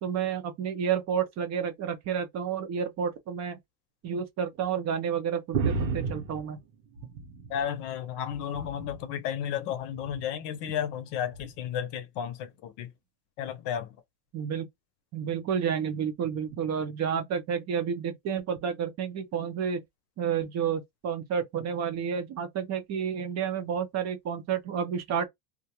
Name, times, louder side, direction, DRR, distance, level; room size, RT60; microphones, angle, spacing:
voice 1, 0.0-3.6 4.0-6.6 14.3-14.7 15.1-19.8 20.2-25.3, right 7 dB, 35° right, 0.5 m, -30 dB
sound 1, 5.5-7.8 8.1-9.1 9.9-10.3 11.3-11.5, right 4 dB, 90° right, 1.0 m, -33 dB
voice 2, 7.5-12.9 13.4-13.9, left 9 dB, 55° left, 0.7 m, -33 dB
2.3 x 2.1 x 2.8 m
supercardioid pair, 120°, 50 cm